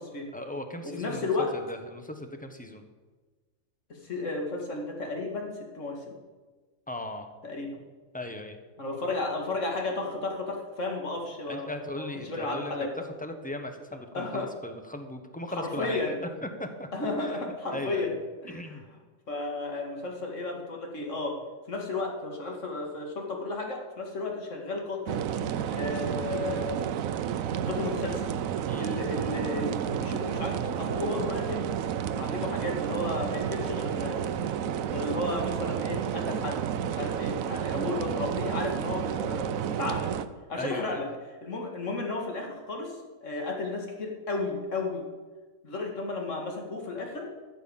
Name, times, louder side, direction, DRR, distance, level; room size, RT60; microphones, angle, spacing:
voice 1, 0.3-2.8 6.9-7.3 8.1-8.6 11.5-16.2 16.4-16.9 17.2-17.4 17.7-18.2 18.5-18.8 28.7-29.0 40.5-41.1, left 1 dB, 5° left, 6 dB, 1.1 m, -38 dB
voice 2, 1.0-1.5 4.0-6.0 7.4-7.8 8.8-12.9 14.1-14.5 15.5-16.2 16.9-18.2 18.4-18.8 19.3-21.4 21.7-25.3 25.7-26.8 27.5-28.2 28.8-31.7 32.2-34.4 34.9-40.1 40.5-41.1 41.4-45.1 45.6-47.3, left 2 dB, 65° left, 1 dB, 2.6 m, -33 dB
sound 1, 25.1-40.2, right 8 dB, 90° right, 1.1 m, -31 dB
14.0 x 7.4 x 7.2 m, 1.3 s
omnidirectional pair, 1.4 m